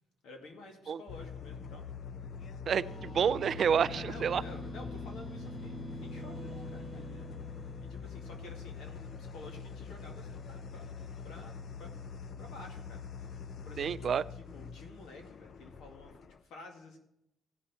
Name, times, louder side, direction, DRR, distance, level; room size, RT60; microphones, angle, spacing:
voice 1, 0.2-1.9 3.9-7.3 7.9-17.0, left 2 dB, 80° left, 2 dB, 2.1 m, -51 dB
sound 1, 1.1-16.4, left 6 dB, 55° left, 0.6 m, -44 dB
voice 2, 2.7-4.4 13.8-14.2, right 7 dB, 55° right, 17 dB, 0.3 m, -29 dB
sound 2, 2.8-9.5, right 1 dB, 25° right, 1.1 m, -46 dB
16.0 x 5.6 x 4.2 m, 0.78 s
cardioid pair, 90°, 0 cm